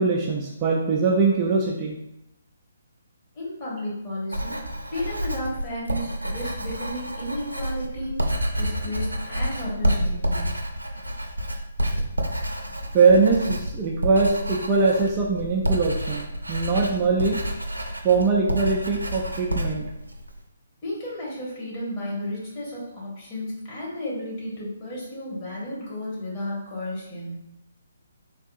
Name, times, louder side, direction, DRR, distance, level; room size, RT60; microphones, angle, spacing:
voice 1, 0.0-1.9 12.9-17.4 18.0-19.8, right 4 dB, 25° right, -3 dB, 0.4 m, -21 dB
voice 2, 3.3-4.6 4.9-8.2 8.5-10.5 20.8-27.5, left 1 dB, 30° left, -6 dB, 1.4 m, -33 dB
Writing, 4.3-20.4, equal, 85° right, 0.5 m, -29 dB
3.6 x 2.5 x 2.4 m, 0.83 s
figure-of-eight pair, 135°, 0 cm